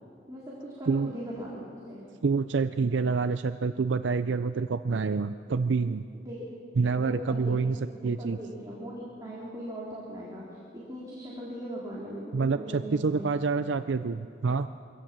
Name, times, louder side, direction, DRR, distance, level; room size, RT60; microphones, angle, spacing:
voice 1, 0.3-2.0 6.3-6.5 7.0-7.5 8.0-13.3, equal, 20° right, -6 dB, 3.6 m, -39 dB
voice 2, 2.2-6.1 6.8-7.8 8.0-8.4 12.3-14.7, right 4 dB, 85° right, 11 dB, 0.5 m, -27 dB
23.5 x 16.5 x 7.4 m, 2.4 s
head